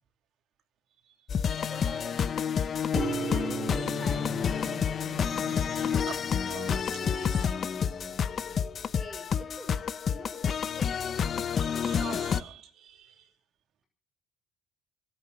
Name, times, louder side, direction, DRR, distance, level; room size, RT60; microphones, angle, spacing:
sound 1, 1.3-12.4, left 7 dB, 40° left, 0.7 m, -29 dB
voice 1, 1.6-2.7 3.3-4.9 8.9-9.8 10.1-11.3, equal, ahead, 5.3 m, -47 dB
voice 2, 2.6-3.5 5.5-8.1 11.3-13.3, right 9 dB, 60° right, 2.7 m, -47 dB
sound 2, 3.0-9.1, right 7 dB, 40° right, 0.7 m, -40 dB
23.5 x 9.2 x 6.4 m
cardioid pair, 120°, 0 cm